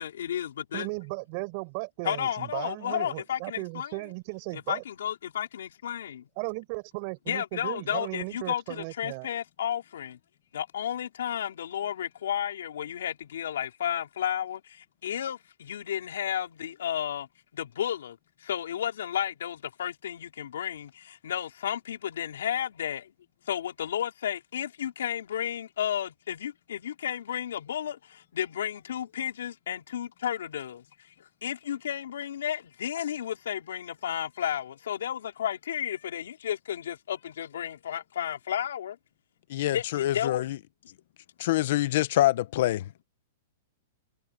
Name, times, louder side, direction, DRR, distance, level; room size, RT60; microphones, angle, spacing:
voice 1, 0.0-0.9 2.0-3.9 4.5-6.3 7.3-10.2 10.5-17.3 17.5-23.1 23.5-30.8 31.4-39.0 39.6-40.4, left 10 dB, 85° left, 4.8 m, -32 dB
voice 2, 0.7-4.8 6.4-9.3, right 28 dB, 40° right, 5.3 m, -36 dB
voice 3, 39.5-40.6 41.4-42.9, left 14 dB, 55° left, 1.1 m, -25 dB
supercardioid pair, 165°, 0 cm